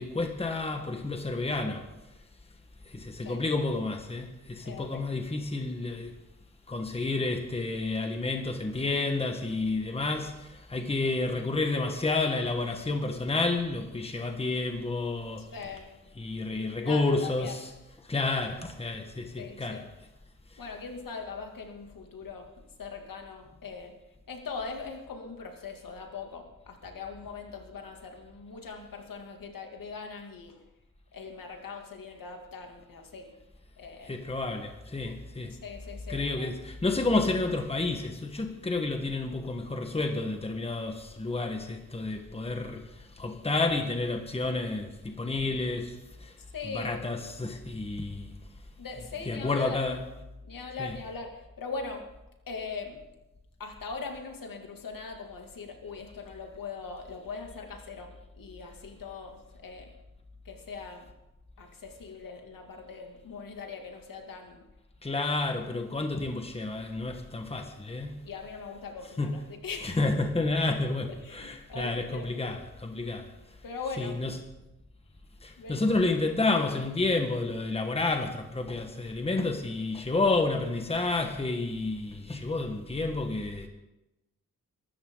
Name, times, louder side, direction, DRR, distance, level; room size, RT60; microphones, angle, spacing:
voice 1, 0.0-1.8 2.9-6.1 6.7-15.4 16.2-17.7 18.1-19.8 34.0-35.5 36.1-46.3 46.6-48.3 49.3-50.0 50.8-50.9 65.0-68.2 69.2-69.4 69.8-73.3 74.0-74.3 75.4-83.7, left 3 dB, 20° left, 1.4 m, -30 dB
voice 2, 4.6-5.0 15.4-15.9 16.8-17.5 19.4-19.9 20.6-22.5 22.8-23.9 24.3-30.6 31.1-33.3 33.8-34.1 35.5-36.5 46.5-46.9 48.8-49.8 50.4-52.1 52.5-53.0 53.6-59.9 60.4-61.1 61.6-64.7 68.2-70.0 71.2-72.3 73.6-74.2 75.6-75.8, left 4 dB, 80° left, 2.6 m, -41 dB
23.5 x 13.5 x 3.9 m
wide cardioid pair, 150°, 33 cm